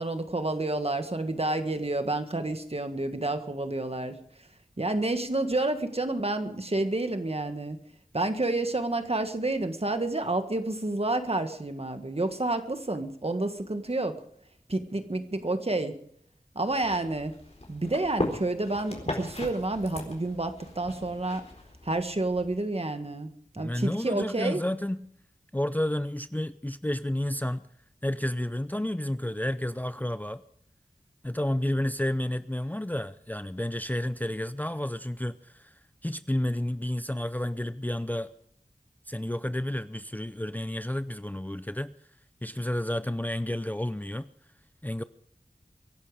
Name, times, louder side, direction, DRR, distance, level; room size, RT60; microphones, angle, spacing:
voice 1, 0.0-4.2 4.8-7.8 8.1-14.2 14.7-16.0 16.5-17.4 17.7-21.5 21.8-24.6, right 2 dB, 45° right, 8 dB, 1.7 m, -29 dB
sound 1, 16.7-22.6, left 1 dB, 45° left, 4.2 m, -38 dB
voice 2, 23.6-25.1 25.5-27.6 28.0-30.4 31.2-38.3 39.1-41.9 42.4-44.3 44.8-45.0, left 1 dB, 10° left, 13 dB, 0.6 m, -31 dB
24.0 x 11.5 x 5.0 m, 0.67 s
wide cardioid pair, 55°, 15 cm